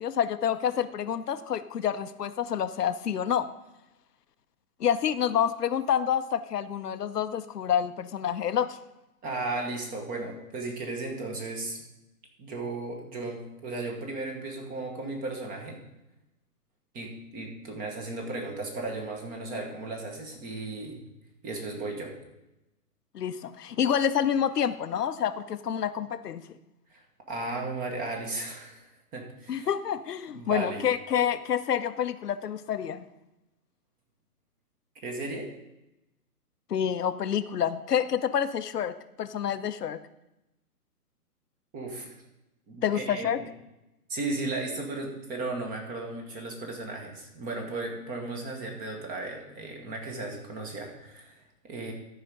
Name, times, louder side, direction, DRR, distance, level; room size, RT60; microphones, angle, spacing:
voice 1, 0.0-3.5 4.8-8.8 23.1-26.4 29.5-33.1 36.7-40.0 42.8-43.4, left 9 dB, 80° left, 11 dB, 0.8 m, -28 dB
voice 2, 9.2-11.8 12.4-15.8 16.9-21.0 21.4-22.1 26.9-29.7 30.3-30.8 35.0-35.5 41.7-42.1 42.7-43.5 44.1-51.9, right 2 dB, 20° right, 2 dB, 1.4 m, -35 dB
13.0 x 5.0 x 5.3 m, 0.94 s
hypercardioid pair, 140°, 46 cm